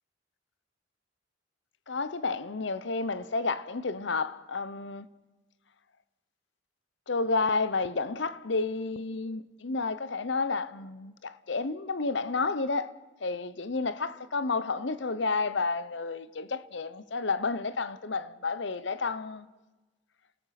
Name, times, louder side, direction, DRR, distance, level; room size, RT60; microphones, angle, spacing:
voice 1, 1.9-5.1 7.1-12.9 13.2-19.5, left 4 dB, 65° left, 0.8 m, -31 dB
28.0 x 19.0 x 5.9 m
head